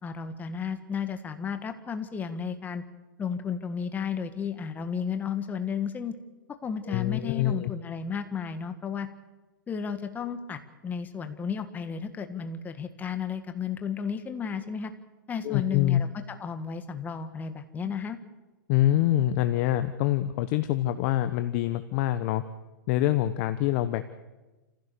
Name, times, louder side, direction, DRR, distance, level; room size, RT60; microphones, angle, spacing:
voice 1, 0.0-2.8 3.2-6.1 6.6-9.1 9.7-14.9 15.3-18.2, left 6 dB, 15° left, 8 dB, 1.7 m, -33 dB
voice 2, 6.9-7.7 15.4-16.0 18.7-22.4 22.9-24.0, left 13 dB, 45° left, 10 dB, 1.1 m, -25 dB
28.5 x 15.5 x 7.0 m, 1.1 s
hypercardioid pair, 135°, 11 cm